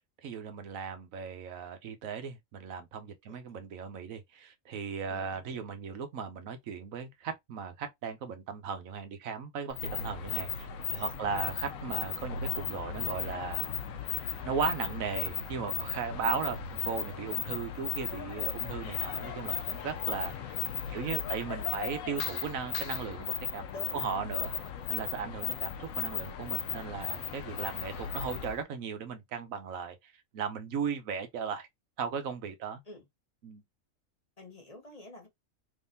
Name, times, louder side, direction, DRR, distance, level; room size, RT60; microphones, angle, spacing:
voice 1, 0.2-13.7 14.1-23.7 23.9-24.5 24.9-31.7 32.0-32.8 33.4-33.6, right 6 dB, 90° right, 1.2 m, -37 dB
voice 2, 5.1-5.6 10.9-11.5 20.9-21.7 23.7-24.7 32.8-33.1 34.4-35.3, left 2 dB, 30° left, 1.2 m, -50 dB
sound 1, 9.7-28.6, left 8 dB, 80° left, 1.0 m, -36 dB
sound 2, 11.2-16.7, right 3 dB, 40° right, 0.4 m, -53 dB
3.6 x 3.2 x 2.6 m
omnidirectional pair, 1.4 m